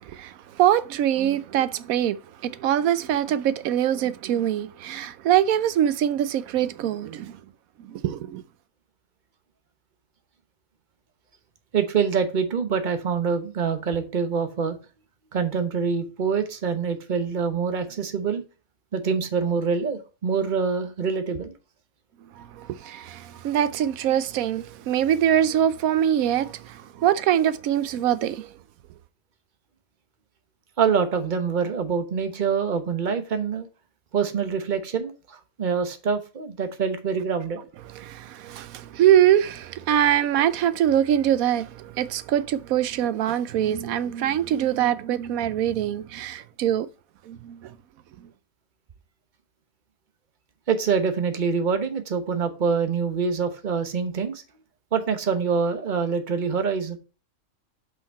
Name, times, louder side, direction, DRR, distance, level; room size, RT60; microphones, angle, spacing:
voice 1, 0.1-7.4 7.9-8.4 22.4-28.5 38.0-46.9 47.3-47.7, right 10 dB, 90° right, 1.1 m, -23 dB
voice 2, 11.7-14.8 15.3-18.4 18.9-21.5 30.8-33.7 34.1-37.6 50.7-54.4 54.9-57.0, right 6 dB, 40° right, 1.0 m, -25 dB
5.8 x 5.2 x 4.1 m
omnidirectional pair, 1.5 m